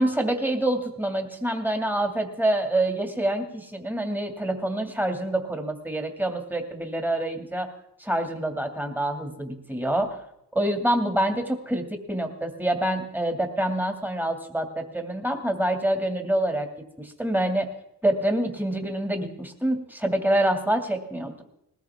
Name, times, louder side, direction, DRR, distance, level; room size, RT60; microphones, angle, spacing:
voice 1, 0.0-7.7 8.0-10.2 10.5-16.7 17.0-17.7 18.0-21.4, right 1 dB, 5° right, 4 dB, 2.4 m, -26 dB
19.5 x 14.0 x 3.6 m, 0.80 s
cardioid pair, 45°, 38 cm